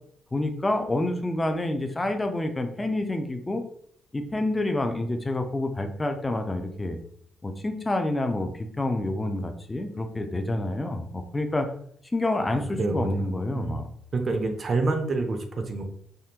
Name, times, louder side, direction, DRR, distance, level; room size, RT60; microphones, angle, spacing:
voice 1, 0.3-3.6 4.1-7.0 7.4-11.7 12.1-13.9, left 2 dB, 15° left, 6 dB, 0.4 m, -28 dB
voice 2, 12.4-15.8, right 3 dB, 45° right, 5 dB, 0.5 m, -28 dB
3.5 x 2.1 x 2.8 m, 0.65 s
cardioid pair, 90°, 0 cm